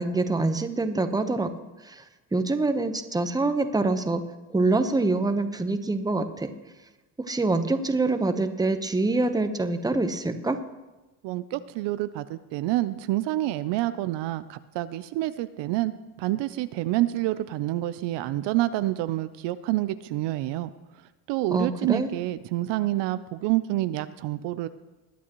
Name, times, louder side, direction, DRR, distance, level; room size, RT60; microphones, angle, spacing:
voice 1, 0.0-1.5 1.8-2.0 2.3-4.2 4.5-6.5 7.3-10.6 21.5-22.1, right 2 dB, 10° right, 8 dB, 0.9 m, -25 dB
voice 2, 11.2-15.9 16.2-20.7 21.3-24.7, right 16 dB, 70° right, 13 dB, 0.6 m, -28 dB
21.0 x 8.4 x 3.0 m, 1.1 s
supercardioid pair, 80°, 44 cm